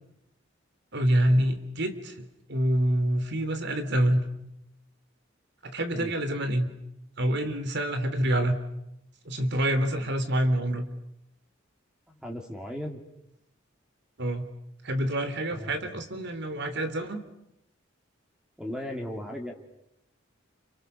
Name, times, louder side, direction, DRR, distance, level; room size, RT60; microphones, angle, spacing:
voice 1, 0.9-4.2 5.6-6.7 7.2-8.6 9.2-10.9 14.2-14.5 14.8-17.2, right 1 dB, 60° right, 9 dB, 3.2 m, -26 dB
voice 2, 12.2-13.0 15.5-15.8 18.6-19.5, equal, 5° right, 2 dB, 2.9 m, -36 dB
29.5 x 29.0 x 6.8 m, 0.82 s
head